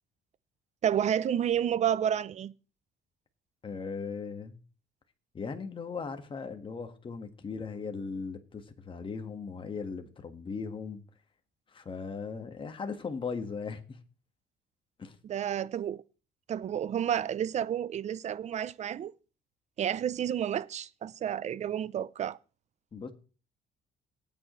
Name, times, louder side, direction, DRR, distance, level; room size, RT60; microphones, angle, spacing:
voice 1, 0.8-2.5 15.2-16.0 16.5-19.1 19.8-22.4, right 9 dB, 40° right, 0.6 m, -30 dB
voice 2, 3.6-4.6 5.3-11.0 11.7-14.0 15.0-15.2 22.9-23.1, left 5 dB, 30° left, 1.7 m, -38 dB
18.5 x 9.2 x 3.2 m
cardioid pair, 110°, 17 cm